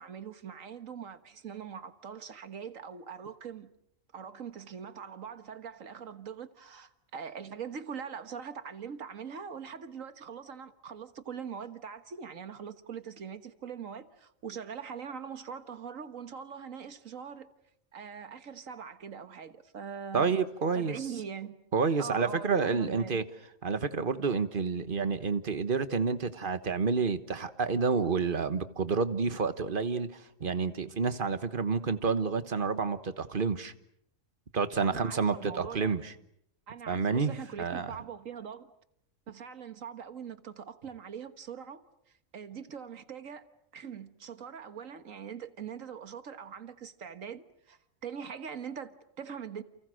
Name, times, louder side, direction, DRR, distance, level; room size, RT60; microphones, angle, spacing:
voice 1, 0.0-3.7 4.1-17.5 17.9-20.4 20.7-21.6 22.0-23.2 34.8-36.0 36.7-38.7 39.3-41.8 42.3-43.5 43.7-49.6, right 7 dB, 85° right, 1.8 m, -42 dB
voice 2, 20.1-21.0 21.7-23.2 23.6-33.7 34.5-36.1 36.9-37.3 37.6-37.9, right 5 dB, 45° right, 1.5 m, -29 dB
29.5 x 29.0 x 6.4 m
omnidirectional pair, 1.3 m